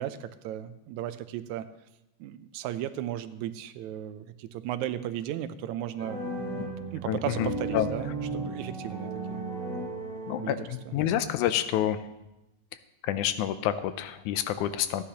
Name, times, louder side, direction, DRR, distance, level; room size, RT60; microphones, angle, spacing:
voice 1, 0.0-1.7 2.2-6.2 6.9-9.4 10.4-10.6, right 11 dB, 80° right, 11 dB, 1.9 m, -35 dB
sound 1, 6.0-10.9, right 2 dB, 30° left, 2.9 m, -35 dB
voice 2, 7.1-7.9 10.3-12.0 13.0-15.0, left 11 dB, 90° left, 12 dB, 2.0 m, -28 dB
14.5 x 9.9 x 2.9 m, 0.92 s
omnidirectional pair, 3.4 m